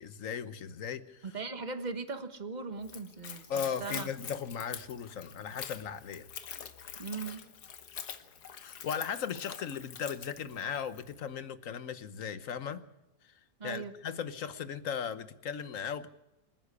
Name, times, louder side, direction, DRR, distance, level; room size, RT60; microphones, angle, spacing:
voice 1, 0.0-1.2 3.5-6.3 8.5-12.8 13.6-16.1, left 7 dB, 60° left, 1.3 m, -37 dB
voice 2, 1.2-4.1 7.0-7.4 13.6-13.9, right 4 dB, 30° right, 1.4 m, -39 dB
Splash splatter / Trickle dribble, 2.8-11.1, left 8 dB, 80° left, 1.7 m, -45 dB
26.5 x 10.0 x 9.7 m
omnidirectional pair, 1.7 m